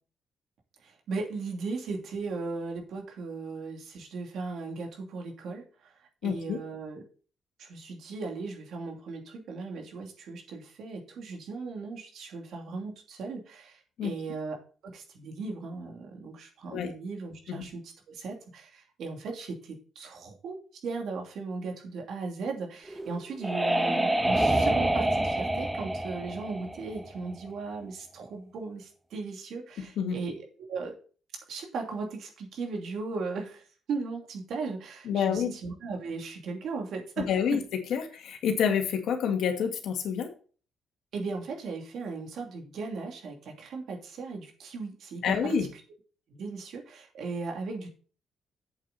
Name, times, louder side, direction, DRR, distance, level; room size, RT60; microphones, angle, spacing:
voice 1, 0.8-5.9 6.2-7.0 7.6-14.6 14.8-30.9 31.5-33.6 33.9-37.3 41.1-45.5 46.3-47.9, right 4 dB, 70° right, 1 dB, 2.8 m, -37 dB
voice 2, 6.2-6.6 14.0-14.1 16.7-16.9 17.5-17.6 30.0-30.2 35.1-35.6 37.3-37.6 37.9-40.3 45.2-45.7, left 7 dB, 75° left, 4 dB, 2.0 m, -28 dB
sound 1, 22.9-27.5, right 1 dB, 10° right, 0.8 m, -27 dB
7.9 x 7.7 x 4.2 m, 0.39 s
cardioid pair, 90°, 0 cm